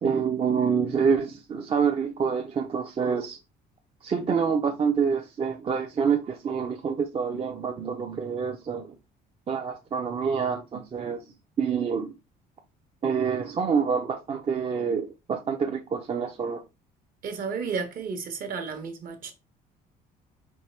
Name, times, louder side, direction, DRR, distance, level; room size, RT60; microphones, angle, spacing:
voice 1, 0.0-3.4 4.0-8.9 9.5-11.2 11.6-12.1 13.0-16.6, right 6 dB, 35° right, 0.5 m, -27 dB
voice 2, 17.2-19.3, right 5 dB, 55° right, 1.1 m, -32 dB
4.5 x 3.0 x 3.2 m
cardioid pair, 110°, 17 cm